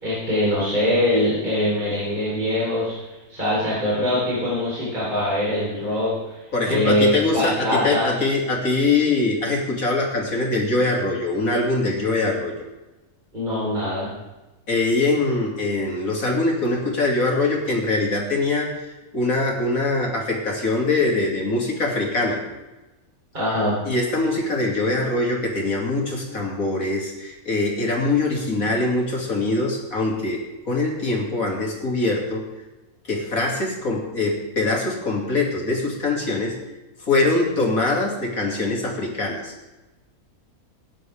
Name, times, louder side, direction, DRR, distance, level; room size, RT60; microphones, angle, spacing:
voice 1, 0.0-6.4 6.7-8.1 13.3-14.1 23.3-23.8, left 1 dB, 30° right, -8 dB, 4.3 m, -23 dB
voice 2, 6.5-12.5 14.7-18.9 19.1-22.4 23.8-32.5 33.0-36.6 37.1-39.5, left 2 dB, 65° left, -1 dB, 3.1 m, -23 dB
18.5 x 9.8 x 3.6 m, 1.1 s
omnidirectional pair, 1.6 m